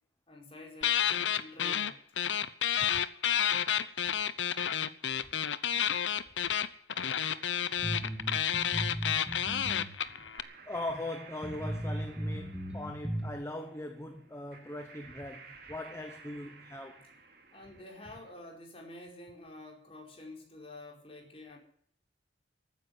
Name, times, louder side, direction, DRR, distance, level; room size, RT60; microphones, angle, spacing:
voice 1, 0.3-1.0 1.3-2.0 17.5-21.6, left 2 dB, 30° left, 4.8 m, -49 dB
sound 1, 0.8-1.9 2.2-10.4, left 9 dB, 75° left, 0.8 m, -30 dB
sound 2, 7.2-18.3, right 4 dB, 50° right, 2.7 m, -55 dB
sound 3, 7.8-9.9 10.2-10.3 10.9-11.0 11.4-13.3, right 1 dB, 5° right, 2.2 m, -36 dB
voice 2, 10.7-17.1, left 1 dB, 15° left, 0.9 m, -40 dB
14.5 x 9.6 x 9.5 m
head